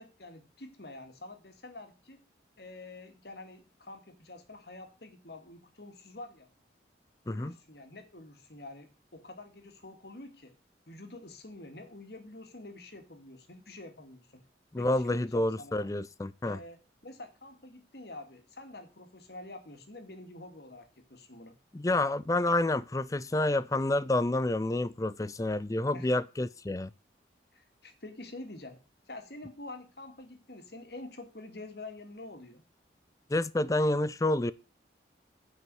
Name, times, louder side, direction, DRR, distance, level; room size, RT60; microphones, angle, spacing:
voice 1, 0.0-2.2 2.6-6.5 7.2-10.5 10.9-14.4 14.8-15.9 16.4-21.5 25.9-26.1 27.5-28.8 29.1-32.6, left 2 dB, 60° left, 2.1 m, -47 dB
voice 2, 14.7-16.6 21.7-26.9 33.3-34.5, left 2 dB, 20° left, 0.4 m, -29 dB
9.2 x 5.8 x 7.6 m
head